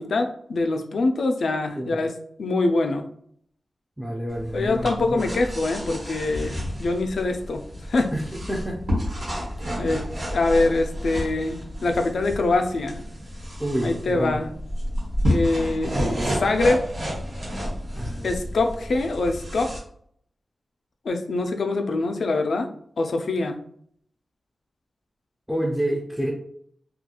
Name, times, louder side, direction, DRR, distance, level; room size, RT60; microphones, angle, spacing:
voice 1, 0.0-3.0 4.5-7.6 7.9-8.1 9.8-10.0 10.3-13.0 13.8-14.5 15.3-15.9 16.4-16.9 18.2-19.7 21.0-22.7 23.0-23.6, left 2 dB, 75° left, 5 dB, 0.3 m, -24 dB
voice 2, 4.0-5.2 8.1-8.2 8.5-8.8 13.6-14.4 18.0-18.4 25.5-26.3, right 1 dB, ahead, -1 dB, 0.4 m, -28 dB
sound 1, 4.3-19.8, equal, 50° right, 1.2 m, -30 dB
2.3 x 2.2 x 2.9 m, 0.64 s
wide cardioid pair, 145°, 0 cm